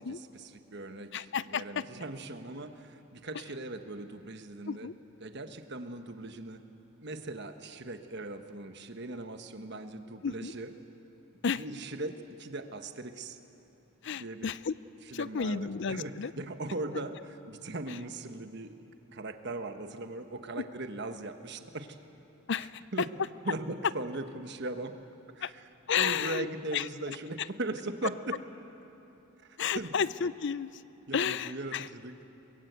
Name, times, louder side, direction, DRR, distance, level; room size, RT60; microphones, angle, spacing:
voice 1, 0.0-4.9 5.2-6.6 7.0-10.7 11.6-13.4 14.2-14.5 15.1-18.7 19.1-22.0 22.9-23.1 23.4-25.0 25.3-25.7 26.0-28.4 29.4-29.9 31.1-32.2, right 2 dB, 50° right, 7 dB, 1.2 m, -39 dB
voice 2, 1.1-1.9 4.7-4.9 10.2-10.5 11.4-11.6 14.0-14.7 15.1-16.3 17.9-18.0 20.6-20.7 22.5-23.1 25.4-25.5 25.9-26.5 26.7-27.5 29.6-30.8 31.1-31.9, left 6 dB, 55° left, 17 dB, 0.5 m, -32 dB
23.5 x 21.5 x 8.1 m, 2.9 s
head